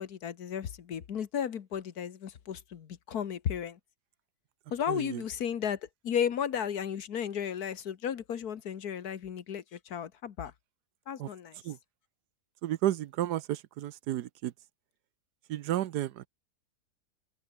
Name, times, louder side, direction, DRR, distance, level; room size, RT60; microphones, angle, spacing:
voice 1, 0.0-3.8 4.7-10.5 11.1-11.6, left 8 dB, 70° left, 1.7 m, -34 dB
voice 2, 4.9-5.2 11.2-11.3 11.6-11.8 12.6-14.5 15.5-16.3, right 13 dB, 85° right, 1.3 m, -32 dB
omnidirectional pair, 1.7 m